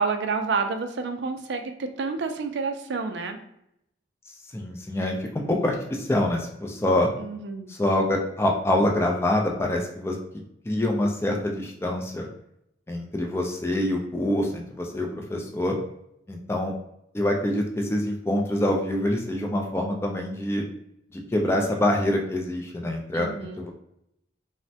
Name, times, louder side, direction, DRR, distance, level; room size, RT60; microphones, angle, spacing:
voice 1, 0.0-3.4 7.2-7.7 23.1-23.6, right 4 dB, 70° right, 6 dB, 0.4 m, -29 dB
voice 2, 4.5-7.1 7.7-10.2 10.6-12.3 12.9-15.7 16.3-16.7 17.1-20.6 21.1-23.3 23.6-23.7, left 1 dB, 15° left, 1 dB, 0.3 m, -25 dB
3.2 x 2.1 x 2.7 m, 0.78 s
head